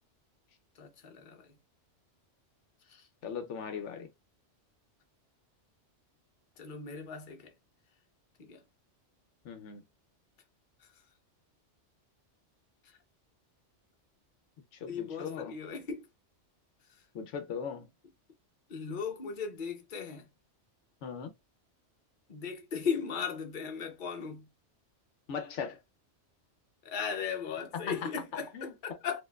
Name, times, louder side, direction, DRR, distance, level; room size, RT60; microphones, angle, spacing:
voice 1, 0.7-1.6 2.8-3.1 6.6-7.5 8.4-8.6 10.8-11.0 12.8-13.0 14.9-16.1 16.9-17.0 18.7-20.3 22.3-24.5 26.8-29.2, left 6 dB, 45° left, 0.9 m, -37 dB
voice 2, 3.2-4.1 9.4-9.8 14.7-15.5 17.1-17.9 21.0-21.3 25.3-25.8 27.8-28.1 28.5-28.7, left 6 dB, 80° left, 1.0 m, -38 dB
4.3 x 2.5 x 2.3 m
omnidirectional pair, 1.2 m